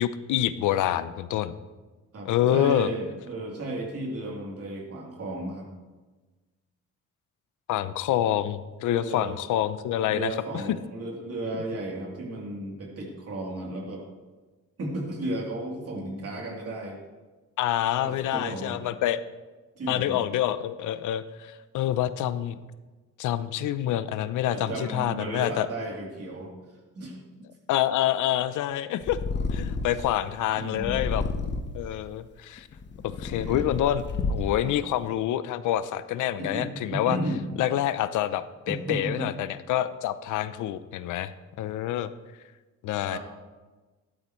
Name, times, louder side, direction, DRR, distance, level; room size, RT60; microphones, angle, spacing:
voice 1, 0.0-1.6 2.3-2.9 7.7-10.3 17.6-19.2 19.9-22.5 23.2-25.7 27.7-29.2 29.5-31.2 31.7-32.7 33.0-34.0 34.3-37.2 37.6-41.3 41.6-42.1 42.8-43.2, left 12 dB, 80° left, 13 dB, 0.6 m, -27 dB
voice 2, 2.1-5.7 9.0-9.4 10.1-14.0 14.8-17.0 18.0-18.8 19.7-20.2 24.5-26.5 26.9-27.2 29.9-30.0 30.5-31.0 33.4-33.7 34.6-34.8 36.4-37.5 38.7-39.3 43.1-43.2, right 1 dB, 50° right, -1 dB, 3.2 m, -34 dB
Purr, 29.0-30.1 30.8-31.9 32.6-34.7, left 3 dB, 35° left, 1.1 m, -30 dB
12.5 x 12.0 x 3.1 m, 1.2 s
cardioid pair, 90°, 30 cm